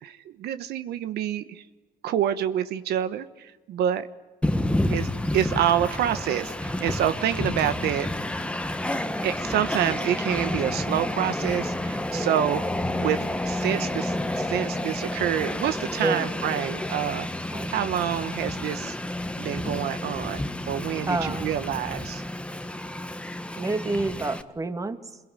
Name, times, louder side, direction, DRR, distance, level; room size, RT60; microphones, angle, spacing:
voice 1, 0.0-1.6 2.0-4.1 4.9-5.1 5.3-8.1 9.2-12.6 12.9-17.3 17.7-19.0 19.4-22.2, right 10 dB, 70° right, 11 dB, 1.3 m, -27 dB
Train, 4.4-24.4, left 1 dB, 5° left, 1.5 m, -30 dB
voice 2, 4.5-4.9 12.1-12.3 16.0-16.3 17.5-17.7 21.1-21.5 23.6-25.2, right 2 dB, 20° right, 9 dB, 2.1 m, -29 dB
27.0 x 22.0 x 9.8 m, 1.2 s
cardioid pair, 110°, 17 cm